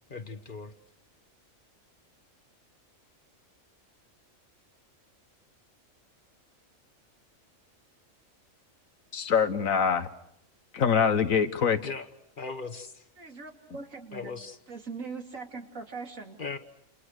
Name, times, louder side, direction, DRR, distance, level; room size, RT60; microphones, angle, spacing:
voice 1, 0.1-0.7 11.8-12.1 12.4-13.0 14.1-14.6 16.4-16.6, left 4 dB, 40° left, 1.4 m, -38 dB
voice 2, 9.1-10.1 10.7-11.8, left 6 dB, 85° left, 1.7 m, -24 dB
voice 3, 13.2-14.4 14.7-16.4, right 4 dB, 80° right, 3.1 m, -41 dB
29.5 x 28.5 x 6.6 m
omnidirectional pair, 1.4 m